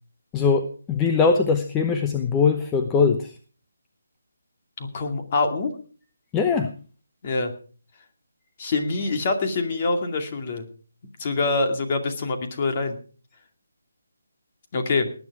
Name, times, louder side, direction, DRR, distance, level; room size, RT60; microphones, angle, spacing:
voice 1, 0.3-3.3 6.3-6.7, left 5 dB, 10° left, 6 dB, 0.9 m, -21 dB
voice 2, 4.8-5.7 7.2-7.5 8.6-10.7 11.2-13.0 14.7-15.1, left 3 dB, 35° left, 6 dB, 2.3 m, -25 dB
18.5 x 9.7 x 4.8 m, 0.40 s
hypercardioid pair, 165°, 0 cm